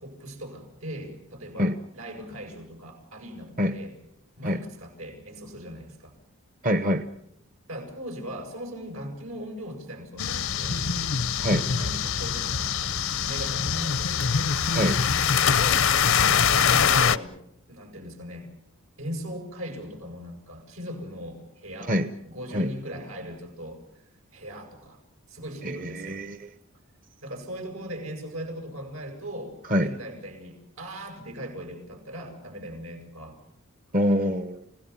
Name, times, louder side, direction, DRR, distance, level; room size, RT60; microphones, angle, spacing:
voice 1, 0.0-3.9 4.4-6.1 7.7-11.1 11.7-13.0 13.2-14.3 15.5-17.3 17.7-18.5 19.0-22.0 22.2-23.8 24.3-25.0 25.3-26.2 27.2-33.4, equal, 80° right, 4 dB, 7.9 m, -39 dB
voice 2, 6.6-7.0 11.4-11.6 14.7-15.0 21.9-22.1 22.5-22.7 25.6-26.5 29.7-29.9 33.9-34.6, equal, 40° right, 9 dB, 1.0 m, -25 dB
sound 1, 10.2-17.2, left 7 dB, 70° left, 0.8 m, -23 dB
30.0 x 18.0 x 7.1 m, 0.78 s
head